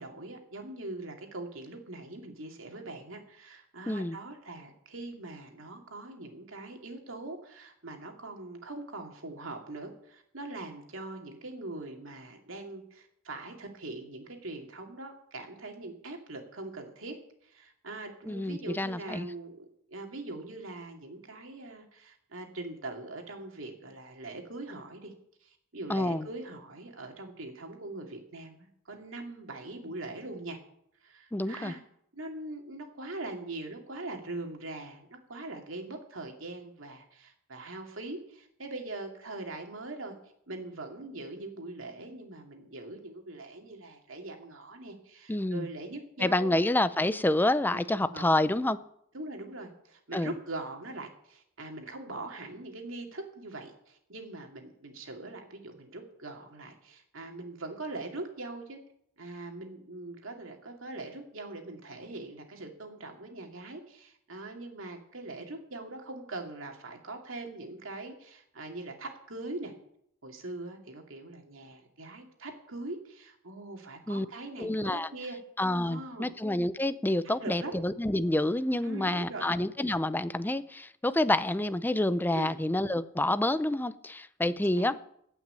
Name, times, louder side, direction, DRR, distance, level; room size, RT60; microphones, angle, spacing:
voice 1, 0.0-17.2 17.4-25.1 25.4-30.6 31.0-31.8 32.1-40.1 40.5-46.5 47.0-47.2 47.7-48.2 49.1-58.8 59.2-69.7 70.2-75.4 75.8-76.3 77.2-77.8 78.8-79.5 82.3-82.6 84.5-84.9, right 2 dB, 85° right, 2.5 m, -42 dB
voice 2, 3.9-4.2 18.3-19.3 25.9-26.3 31.3-31.7 45.3-45.7 46.2-48.8 50.1-50.3 74.1-74.3 74.6-75.1 75.6-85.0, left 1 dB, 10° left, 0.5 m, -28 dB
16.0 x 6.0 x 8.8 m
head